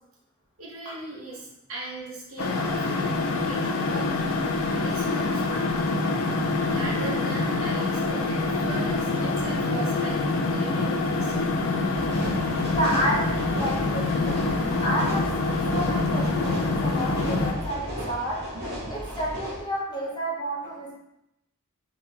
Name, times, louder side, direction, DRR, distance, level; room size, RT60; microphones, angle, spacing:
voice 1, 0.6-3.0 3.5-4.3 4.8-5.4 6.4-10.2 10.5-11.5, right 2 dB, 70° right, -3 dB, 1.0 m, -38 dB
sound 1, 2.4-17.5, left 3 dB, 70° left, 0.4 m, -26 dB
sound 2, 11.9-19.6, equal, 50° right, 1.1 m, -35 dB
voice 2, 12.7-13.2 13.6-18.4 18.9-20.9, right 1 dB, 20° left, -4 dB, 0.7 m, -30 dB
3.5 x 2.9 x 2.8 m, 0.83 s
head